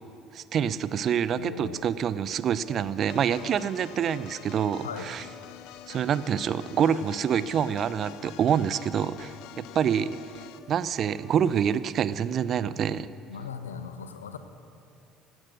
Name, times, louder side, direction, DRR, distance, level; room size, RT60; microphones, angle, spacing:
voice 1, 0.3-5.2 5.9-10.2 10.7-13.1, right 8 dB, 45° right, 16 dB, 0.6 m, -26 dB
voice 2, 1.3-1.9 4.8-5.1 13.3-14.4, left 6 dB, 80° left, 9 dB, 0.9 m, -38 dB
sound 1, 2.6-11.8, left 7 dB, 45° left, 1.8 m, -52 dB
sound 2, 3.1-10.7, left 14 dB, 65° left, 0.5 m, -47 dB
16.5 x 12.5 x 6.4 m, 2.5 s
figure-of-eight pair, 55°, 0 cm